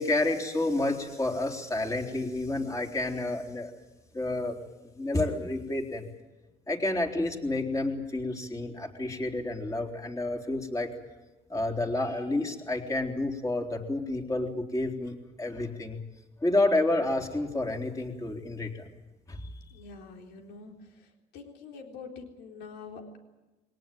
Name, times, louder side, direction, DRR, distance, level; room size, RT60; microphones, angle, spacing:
voice 1, 0.0-3.7 4.1-4.6 4.8-6.1 6.7-10.9 11.5-16.0 16.4-18.9 19.3-19.5, left 2 dB, 20° left, 2 dB, 3.9 m, -30 dB
voice 2, 19.7-21.1 21.3-23.2, left 4 dB, 85° left, 2 dB, 3.9 m, -45 dB
23.0 x 18.5 x 9.2 m, 1.1 s
cardioid pair, 110°, 17 cm